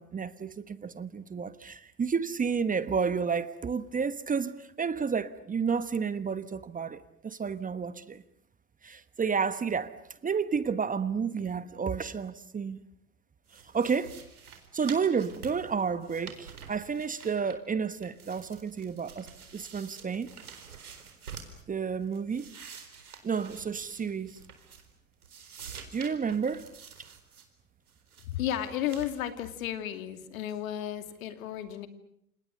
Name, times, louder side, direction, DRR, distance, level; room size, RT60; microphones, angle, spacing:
voice 1, 0.0-8.2 8.8-9.9 10.2-12.8 13.7-14.2 14.7-19.3 19.5-20.3 21.7-22.5 23.2-24.4 25.9-26.6, right 6 dB, 20° right, 1.3 m, -31 dB
sound 1, 13.5-17.8 18.0-21.6 22.0-25.0 25.2-27.5 27.9-28.4 28.8-29.1, right 6 dB, 85° right, 4.3 m, -48 dB
voice 2, 28.3-31.9, left 11 dB, 70° left, 2.8 m, -33 dB
29.0 x 28.0 x 6.7 m
hypercardioid pair, 85°, 43 cm